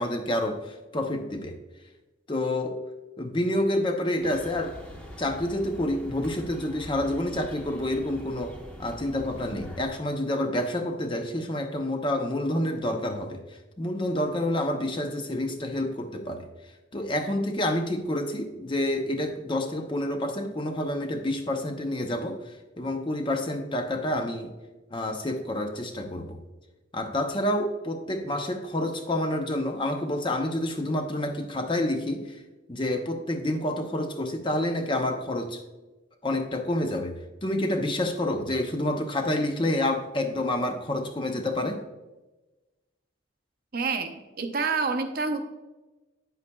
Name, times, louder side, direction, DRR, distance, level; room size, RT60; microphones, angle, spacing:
voice 1, 0.0-1.6 2.3-2.8 3.2-4.8 5.2-13.4 13.8-16.5 16.9-22.5 22.8-24.5 24.9-26.4 26.9-32.4 32.7-35.6 36.2-41.8, left 1 dB, 25° left, 5 dB, 0.6 m, -28 dB
sound 1, 4.2-9.9, equal, 5° left, 0.9 m, -44 dB
voice 2, 43.7-45.4, right 4 dB, 50° right, 5 dB, 0.7 m, -28 dB
9.4 x 8.0 x 2.3 m, 1.1 s
head